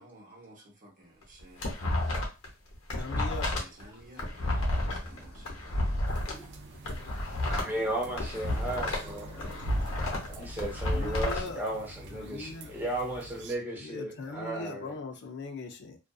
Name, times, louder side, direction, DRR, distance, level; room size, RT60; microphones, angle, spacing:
voice 1, 0.0-1.7 3.5-5.6, right 1 dB, 40° right, 0.9 m, -54 dB
sound 1, 1.2-2.5 2.7-6.3 6.7-9.1 9.4-11.4, left 1 dB, 85° left, 0.8 m, -31 dB
voice 2, 2.9-3.5 10.9-11.6 12.1-12.8 13.8-16.0, left 3 dB, 55° left, 0.5 m, -40 dB
sound 2, 5.0-7.0 7.4-10.5, equal, 10° left, 1.2 m, -49 dB
sound 3, 6.0-13.6, right 1 dB, 55° right, 0.3 m, -48 dB
voice 3, 7.5-9.3 10.4-14.9, right 1 dB, 10° right, 0.8 m, -35 dB
2.4 x 2.4 x 2.3 m
head